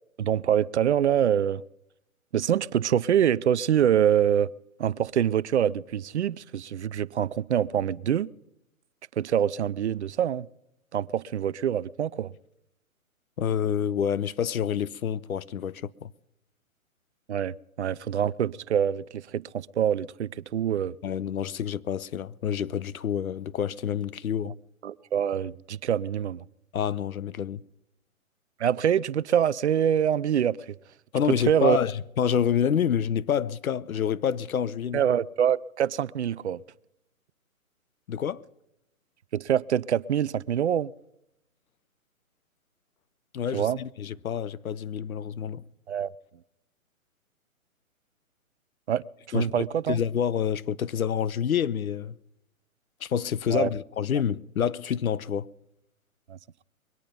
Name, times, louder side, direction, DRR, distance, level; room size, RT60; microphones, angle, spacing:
voice 1, 0.2-1.6 2.3-4.5 4.8-8.3 9.2-10.5 10.9-12.3 17.3-21.0 24.4-24.5 24.8-26.5 28.6-30.8 31.3-31.8 34.9-36.6 39.3-40.9 43.5-43.8 45.9-46.1 48.9-50.0 53.5-53.7 56.3-56.6, right 9 dB, 55° right, 0.5 m, -25 dB
voice 2, 13.4-16.1 21.0-24.5 26.7-27.6 31.1-31.9 32.2-35.0 38.1-38.4 43.3-45.6 49.3-52.1 53.0-55.5, left 8 dB, 80° left, 0.7 m, -28 dB
22.5 x 9.1 x 5.2 m
hypercardioid pair, 140°, 42 cm